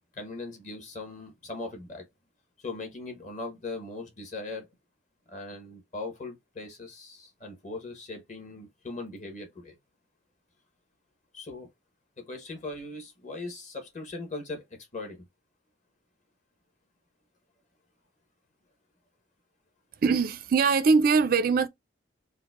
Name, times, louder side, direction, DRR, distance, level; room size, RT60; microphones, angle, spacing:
voice 1, 0.1-2.0 2.6-4.7 5.3-9.8 11.3-11.7 12.2-14.6 14.9-15.2, left 2 dB, 40° left, 0.9 m, -39 dB
voice 2, 20.0-21.7, right 5 dB, 45° right, 0.3 m, -22 dB
4.6 x 2.0 x 2.3 m
head